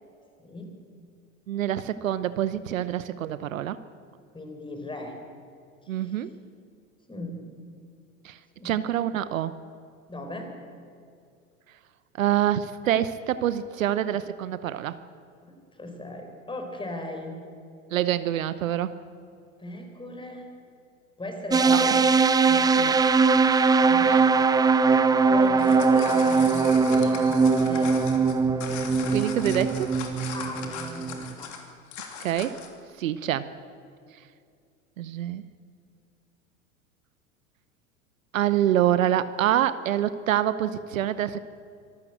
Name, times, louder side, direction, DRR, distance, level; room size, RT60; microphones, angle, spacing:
voice 1, 0.4-0.7 4.3-5.2 5.8-6.3 7.1-7.5 8.6-8.7 10.1-10.5 15.4-17.4 19.6-20.5 21.2-22.1 22.5-22.8 23.8-24.4 25.3-28.0 30.3-31.5, left 1 dB, 10° left, 4 dB, 4.1 m, -38 dB
voice 2, 1.5-3.8 5.9-6.3 8.2-8.4 8.6-9.5 12.2-14.9 17.9-18.9 21.7-21.8 22.8-23.0 24.1-24.3 29.1-29.9 32.2-32.6 33.0-33.5 35.0-35.4 38.3-41.4, right 11 dB, 70° right, 14 dB, 0.9 m, -26 dB
sound 1, 21.5-31.3, right 4 dB, 10° right, 0.5 m, -21 dB
sound 2, 25.4-32.8, left 7 dB, 45° left, 3.1 m, -39 dB
25.0 x 13.0 x 8.0 m, 2.4 s
figure-of-eight pair, 85°, 41 cm